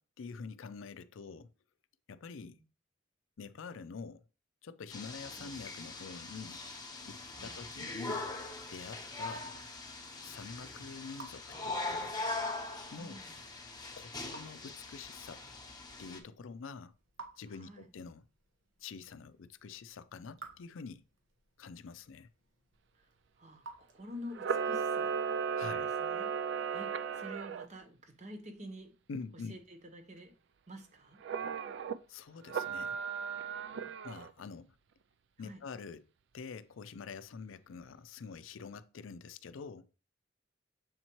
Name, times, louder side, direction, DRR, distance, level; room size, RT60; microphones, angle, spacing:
voice 1, 0.0-1.5 2.1-2.6 3.4-4.2 4.6-6.6 7.1-8.3 8.7-9.5 10.2-12.1 12.9-13.2 14.0-15.4 16.0-16.9 17.4-18.2 18.8-21.0 21.6-22.3 25.6-25.9 29.1-29.6 32.1-33.0 34.0-34.7 35.4-36.0 36.3-39.9, left 5 dB, 90° left, 0.4 m, -46 dB
voice 2, 2.2-2.6 5.4-5.5 7.3-7.6 12.9-13.4 17.5-17.9 22.9-23.1 23.4-25.1 25.6-28.9 29.3-30.3 30.7-31.2 35.4-35.6, equal, 35° right, 0.9 m, -49 dB
sound 1, 4.9-16.2, left 2 dB, 20° left, 1.0 m, -41 dB
Raindrop / Drip, 7.4-24.6, right 3 dB, 80° right, 1.2 m, -58 dB
Camera, 24.3-27.7 31.2-32.0 32.5-34.3, right 6 dB, 60° right, 0.4 m, -35 dB
7.2 x 4.3 x 3.0 m
head